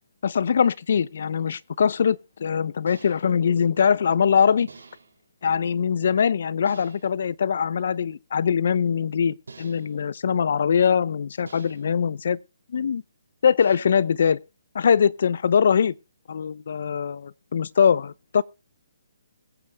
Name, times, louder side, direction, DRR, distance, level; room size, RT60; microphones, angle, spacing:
voice 1, 0.2-4.7 5.4-12.4 12.7-13.0 13.4-14.4 14.7-15.9 16.3-18.4, left 7 dB, 60° left, 0.6 m, -22 dB
sound 1, 1.0-1.1 2.9-3.4 4.7-5.3 6.7-7.2 9.5-10.1 11.5-12.0 13.6-14.2, right 4 dB, 85° right, 3.9 m, -47 dB
22.0 x 7.9 x 3.4 m
hypercardioid pair, 160°, 0 cm